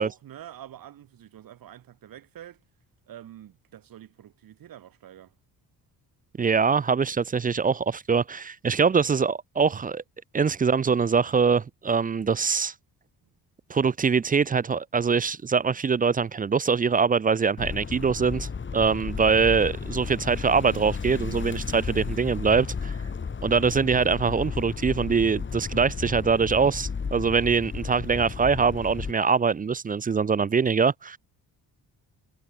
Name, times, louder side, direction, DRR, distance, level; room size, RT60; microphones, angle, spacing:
voice 1, 0.0-2.6 3.1-5.3, right 11 dB, 55° right, 2.0 m, -46 dB
voice 2, 6.4-10.0 10.3-12.7 13.7-22.9 23.4-31.2, right 5 dB, 20° right, 0.5 m, -23 dB
sound 1, 17.6-29.1, left 5 dB, 30° left, 2.4 m, -33 dB
cardioid pair, 110°, 40 cm